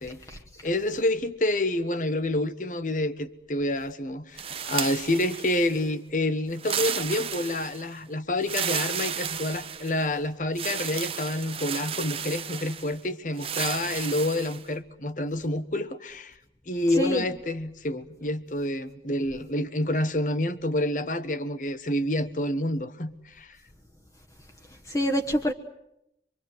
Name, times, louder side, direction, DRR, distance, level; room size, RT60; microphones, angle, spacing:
voice 1, 0.0-0.6 16.8-17.2 24.7-25.5, equal, 20° left, 1.2 m, -28 dB
voice 2, 0.6-16.4 16.7-23.6, left 1 dB, 45° left, 1.2 m, -28 dB
sound 1, 4.4-5.9 6.5-7.9 8.4-10.1 10.5-12.9 13.4-14.6, right 8 dB, 35° right, 1.0 m, -33 dB
26.0 x 24.0 x 7.9 m
head